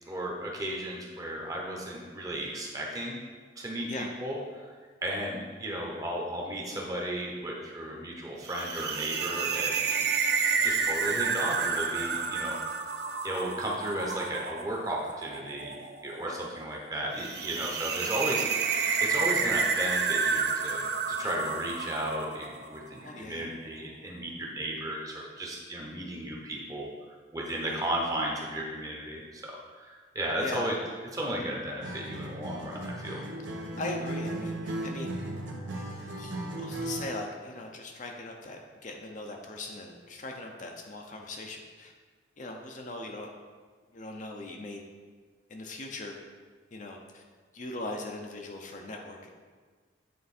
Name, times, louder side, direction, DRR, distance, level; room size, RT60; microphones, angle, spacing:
voice 1, 0.1-3.1 3.6-4.4 5.0-12.6 13.2-15.7 16.0-18.7 19.0-20.8 21.1-26.9 27.3-30.8 31.1-33.2, right 1 dB, 20° right, -2 dB, 1.0 m, -34 dB
sound 1, 8.4-22.8, right 5 dB, 55° right, 0.5 m, -30 dB
voice 2, 10.2-10.6 16.3-16.4 21.2-21.3 23.0-23.5 27.6-27.9 30.4-30.8 33.8-35.1 36.2-41.9 42.4-43.3 43.9-44.8 45.5-46.1 46.7-47.2 47.5-49.3, left 2 dB, 40° left, 1 dB, 0.7 m, -40 dB
Acoustic guitar, 31.8-37.2, right 1 dB, 75° right, 1.0 m, -36 dB
9.3 x 3.8 x 4.3 m, 1.5 s
head